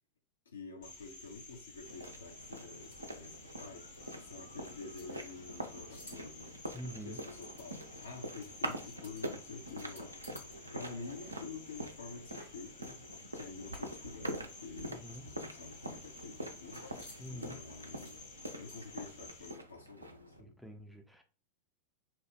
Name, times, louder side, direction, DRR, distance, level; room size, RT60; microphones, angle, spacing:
voice 1, 0.5-3.9 4.1-6.5 7.0-13.1 13.3-16.8 17.3-18.2 18.5-20.5, left 4 dB, 70° left, 0.6 m, -49 dB
Cricket, 0.8-19.5, left 3 dB, 55° left, 1.0 m, -53 dB
sound 1, 1.3-10.6 10.8-14.2 14.4-14.5 14.8-19.1, left 1 dB, 90° left, 1.6 m, -60 dB
sound 2, 1.8-20.4, right 1 dB, 80° right, 0.4 m, -45 dB
voice 2, 6.7-7.2 14.9-15.3 17.2-17.7 20.4-21.2, equal, ahead, 0.4 m, -46 dB
2.8 x 2.0 x 3.3 m
figure-of-eight pair, 90°, 0 cm